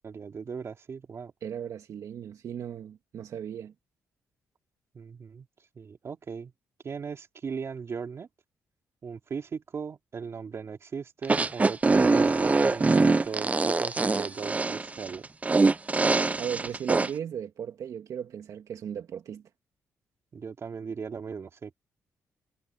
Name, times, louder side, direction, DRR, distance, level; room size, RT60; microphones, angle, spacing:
voice 1, 0.0-1.3 4.9-5.5 5.7-6.5 6.8-8.3 9.0-15.3 20.3-21.8, right 6 dB, 50° right, 2.9 m, -38 dB
voice 2, 1.4-3.7 16.4-19.4, right 8 dB, 70° right, 2.1 m, -36 dB
sound 1, 11.2-17.1, right 3 dB, 25° right, 0.6 m, -23 dB
cardioid pair, 75°, 6 cm